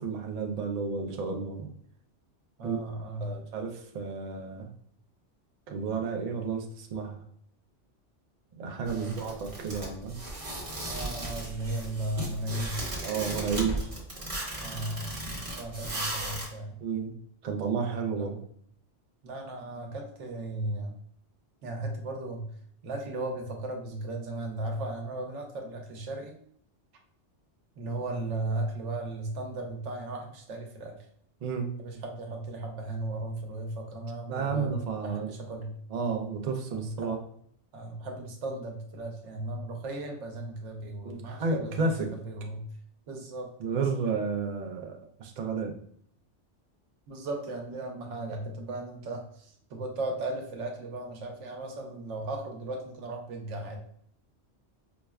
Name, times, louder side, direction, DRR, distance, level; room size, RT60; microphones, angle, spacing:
voice 1, 0.0-1.7 2.6-2.8 3.2-4.7 5.7-7.2 8.6-10.2 13.0-13.9 16.8-17.1 17.4-18.4 31.4-31.7 34.3-35.3 35.9-37.2 41.0-42.1 43.6-45.7, right 5 dB, 55° right, 3 dB, 0.4 m, -32 dB
voice 2, 2.6-3.3 8.8-9.2 10.8-12.9 14.6-16.8 18.2-18.3 19.2-21.0 21.6-22.5 22.8-26.4 27.8-31.0 31.8-35.7 36.7-37.1 37.7-42.6 43.1-43.9 47.1-53.8, right 2 dB, 90° right, 3 dB, 1.0 m, -36 dB
sound 1, 8.9-16.5, right 1 dB, 30° right, 0.9 m, -36 dB
4.9 x 2.1 x 2.3 m, 0.65 s
omnidirectional pair, 1.2 m